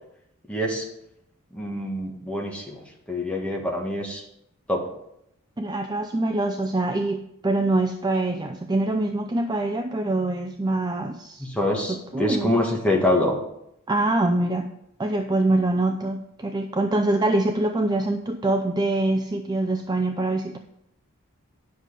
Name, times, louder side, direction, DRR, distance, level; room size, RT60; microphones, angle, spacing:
voice 1, 0.5-0.9 1.5-2.8 3.1-4.2 4.7-4.8 11.4-13.4, left 1 dB, 5° left, -1 dB, 1.6 m, -25 dB
voice 2, 5.6-11.5 11.8-12.6 13.9-14.7 15.0-20.6, right 2 dB, 20° right, 6 dB, 0.5 m, -24 dB
10.0 x 6.6 x 5.0 m, 0.78 s
head